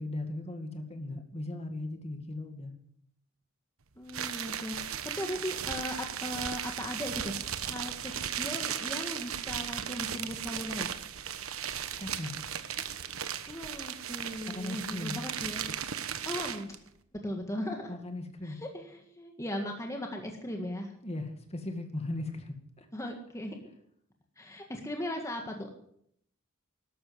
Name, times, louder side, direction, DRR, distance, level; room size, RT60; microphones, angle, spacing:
voice 1, 0.0-2.7 12.0-12.4 14.5-15.2 17.9-18.6 21.0-22.9, left 2 dB, 30° left, 5 dB, 2.2 m, -38 dB
voice 2, 4.0-10.9 13.5-15.6 16.2-16.7 17.2-17.9 18.4-20.9 22.9-23.6 24.4-25.7, left 1 dB, 15° left, 2 dB, 1.8 m, -38 dB
sound 1, 4.1-16.8, right 9 dB, 85° right, 1.2 m, -36 dB
13.0 x 12.5 x 8.1 m, 0.70 s
head